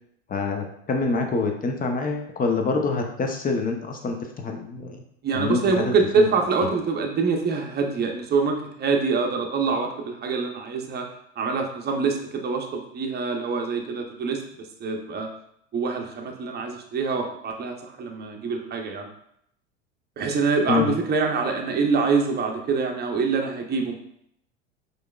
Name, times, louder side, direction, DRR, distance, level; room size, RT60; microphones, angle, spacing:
voice 1, 0.3-5.0 5.3-5.8 6.2-6.3 20.7-20.9, left 4 dB, 25° left, 4 dB, 0.7 m, -26 dB
voice 2, 5.2-11.1 11.4-15.3 15.7-19.1 20.2-24.0, right 4 dB, 30° right, 2 dB, 0.7 m, -25 dB
4.8 x 3.1 x 2.3 m, 0.71 s
hypercardioid pair, 80°, 35 cm